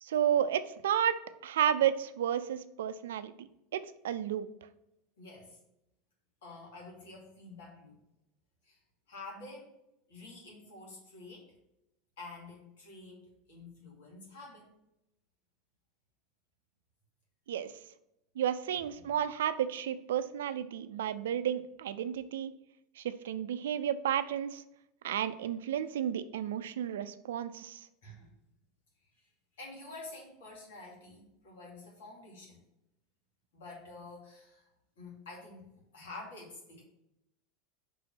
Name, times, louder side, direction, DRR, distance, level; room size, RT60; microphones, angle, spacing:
voice 1, 0.0-3.5 3.7-4.5 17.5-17.7 18.4-22.5 23.0-24.6 25.0-27.8, right 9 dB, 80° right, 13 dB, 0.4 m, -32 dB
voice 2, 5.2-5.6 6.4-8.0 8.6-8.8 9.1-9.7 10.1-11.5 12.2-14.7 18.9-19.2 28.0-28.3 29.6-32.6 33.5-34.7 35.0-36.8, left 3 dB, 75° left, -2 dB, 2.5 m, -49 dB
5.4 x 4.2 x 5.9 m, 0.86 s
hypercardioid pair, 90°, 0 cm